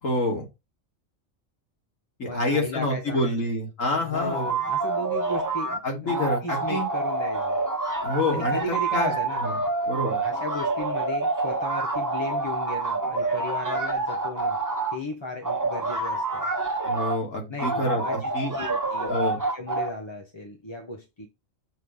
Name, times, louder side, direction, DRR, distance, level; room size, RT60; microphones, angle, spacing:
voice 1, 0.0-0.5 2.2-4.5 5.8-6.9 8.0-8.6 8.9-9.1 9.4-9.6 9.9-10.2 16.8-18.5 19.1-19.4, left 1 dB, 75° left, 2.6 m, -27 dB
voice 2, 2.2-3.4 4.0-7.6 8.3-9.4 10.2-14.6 14.9-16.4 17.5-21.3, left 2 dB, 25° left, 0.7 m, -35 dB
sound 1, 4.1-5.8 6.1-15.0 15.4-17.2 17.6-19.9, right 3 dB, 15° right, 1.4 m, -27 dB
6.6 x 3.2 x 5.4 m
omnidirectional pair, 1.4 m